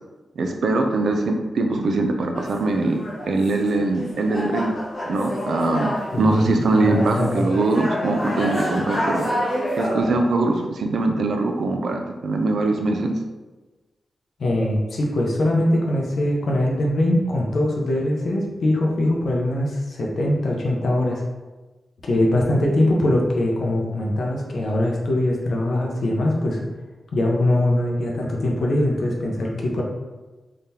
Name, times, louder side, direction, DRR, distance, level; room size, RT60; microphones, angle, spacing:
voice 1, 0.4-4.7 5.1-9.3 9.7-13.2, right 2 dB, 65° right, 4 dB, 0.4 m, -22 dB
sound 1, 2.3-10.0, equal, 30° left, 1.2 m, -28 dB
voice 2, 6.1-7.4 10.0-10.2 14.4-21.2 22.0-26.7 27.1-29.8, left 1 dB, 60° left, -1 dB, 0.7 m, -22 dB
3.6 x 3.4 x 2.8 m, 1.2 s
wide cardioid pair, 180°, 0 cm